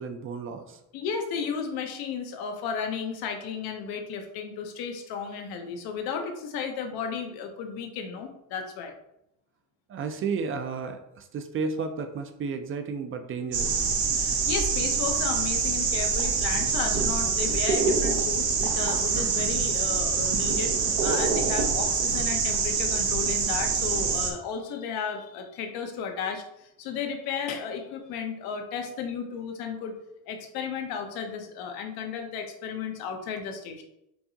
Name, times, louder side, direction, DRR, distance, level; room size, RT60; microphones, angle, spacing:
voice 1, 0.0-0.8 9.9-13.9, right 5 dB, 35° right, 7 dB, 0.4 m, -33 dB
voice 2, 0.9-8.9 14.1-29.9 30.3-33.8, left 6 dB, 80° left, 4 dB, 0.8 m, -34 dB
sound 1, 13.5-24.3, right 5 dB, 90° right, 0.8 m, -25 dB
4.5 x 2.8 x 2.7 m, 0.82 s
cardioid pair, 125°, 36 cm